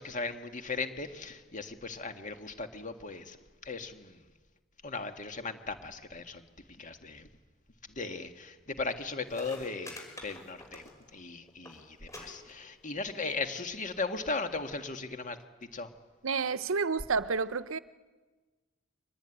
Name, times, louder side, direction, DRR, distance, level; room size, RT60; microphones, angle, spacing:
voice 1, 0.0-3.4 3.6-4.2 4.8-6.5 6.8-7.3 7.9-10.8 11.1-15.9, left 3 dB, 35° left, 1.9 m, -37 dB
sound 1, 9.0-9.1 9.3-11.2 11.5-11.8 12.1-12.2 12.5-13.0 13.8-13.9, left 1 dB, 15° left, 5.6 m, -47 dB
voice 2, 16.2-17.8, right 5 dB, 70° right, 0.8 m, -30 dB
25.0 x 19.5 x 10.0 m
head